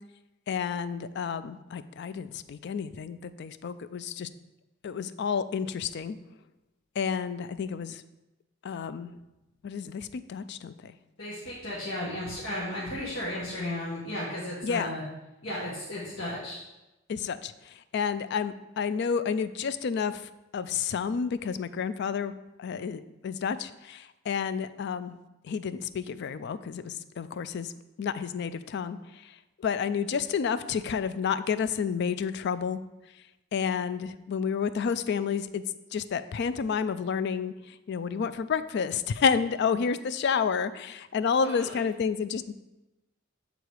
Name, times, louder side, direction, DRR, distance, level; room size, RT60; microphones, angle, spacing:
voice 1, 0.5-4.3 4.8-6.2 7.0-8.0 8.6-9.1 9.6-10.9 14.6-14.9 17.1-22.3 22.6-25.2 25.4-27.7 28.0-32.8 33.5-35.6 35.9-42.5, left 6 dB, 60° left, 14 dB, 0.4 m, -30 dB
voice 2, 11.2-15.0 15.4-16.6 41.4-41.8, left 1 dB, 85° left, -7 dB, 1.5 m, -34 dB
8.2 x 3.9 x 4.7 m, 0.99 s
head